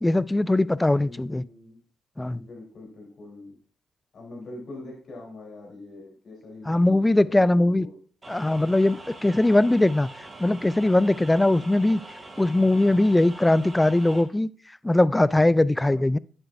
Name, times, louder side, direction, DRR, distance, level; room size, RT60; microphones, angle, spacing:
voice 1, 0.0-1.4 2.2-2.4 6.7-7.9 8.3-10.1 10.4-12.0 12.4-14.5 14.8-16.2, left 1 dB, 15° left, 0.3 m, -20 dB
voice 2, 0.9-1.8 2.3-3.5 4.1-8.0 15.8-16.0, left 2 dB, 60° left, 3.5 m, -43 dB
sound 1, 8.2-14.2, right 2 dB, 35° right, 2.5 m, -43 dB
8.9 x 7.7 x 2.6 m
supercardioid pair, 60°, 0 cm